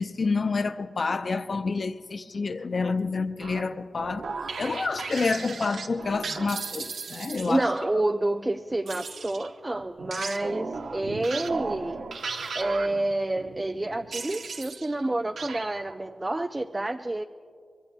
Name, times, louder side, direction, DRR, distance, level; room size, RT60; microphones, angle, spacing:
voice 1, 0.0-4.2 4.6-7.6, left 4 dB, 60° left, 0.6 m, -28 dB
sound 1, 3.4-7.8 8.9-15.1 15.4-15.9, right 4 dB, 85° right, 0.9 m, -36 dB
voice 2, 7.4-12.0 12.5-17.2, right 2 dB, 25° right, 0.4 m, -28 dB
25.0 x 22.0 x 2.3 m
cardioid pair, 60°, 0 cm